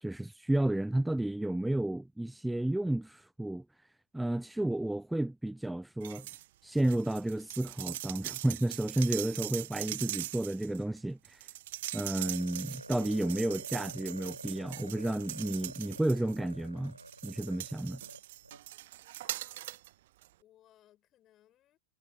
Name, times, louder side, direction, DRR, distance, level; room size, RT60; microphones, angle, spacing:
voice 1, 0.0-3.6 4.1-6.3 6.6-11.5 11.9-17.0 17.2-18.0, right 1 dB, 5° right, 0.4 m, -32 dB
sound 1, 6.0-6.5 6.8-16.5 17.0-19.9 20.2-20.3, right 16 dB, 55° right, 0.7 m, -41 dB
sound 2, 12.2-18.6, right 1 dB, 85° right, 4.0 m, -49 dB
voice 2, 19.2-20.1 20.4-21.8, left 12 dB, 30° left, 6.9 m, -65 dB
figure-of-eight pair, 90°, 0 cm